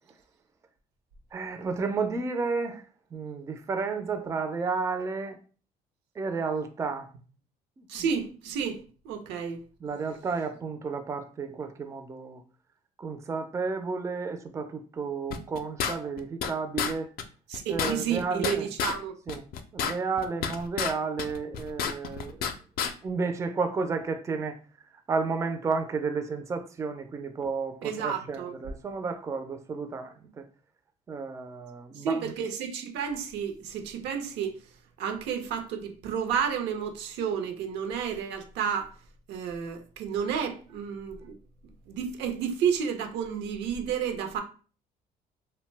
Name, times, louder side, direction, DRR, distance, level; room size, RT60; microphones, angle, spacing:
voice 1, 1.3-2.8 3.1-5.4 6.2-7.1 7.8-8.0 9.8-12.4 13.0-17.1 17.7-18.7 19.3-19.4 19.7-22.5 23.0-24.6 25.1-30.4 31.1-32.3, right 4 dB, 20° right, 0.3 m, -32 dB
voice 2, 7.9-9.6 17.5-19.1 27.8-28.5 32.0-34.6 35.0-38.9 39.3-41.3 41.9-44.4, right 7 dB, 85° right, 0.6 m, -31 dB
sound 1, 15.3-16.5 16.8-16.9 17.2-17.3 17.5-19.0 19.3-20.9 21.2-22.5 22.8-22.9, left 7 dB, 65° left, 0.4 m, -30 dB
2.6 x 2.1 x 3.2 m
cardioid pair, 110°, 17 cm